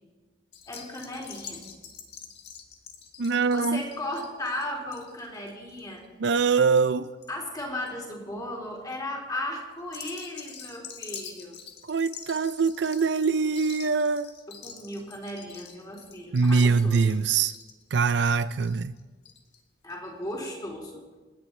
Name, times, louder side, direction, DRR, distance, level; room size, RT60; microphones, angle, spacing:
sound 1, 0.5-7.3 7.6-8.1 8.6-9.0 9.8-19.6 19.9-20.0 20.2-20.3, left 7 dB, 60° left, 1.9 m, -45 dB
voice 1, 0.7-1.6 3.5-6.0 7.3-11.6 14.5-17.1 19.8-21.0, left 1 dB, 20° left, 3.7 m, -36 dB
voice 2, 3.2-3.8 6.2-7.1 11.9-14.3 16.3-17.5 17.9-18.9, right 5 dB, 65° right, 0.5 m, -23 dB
29.0 x 10.5 x 4.4 m
head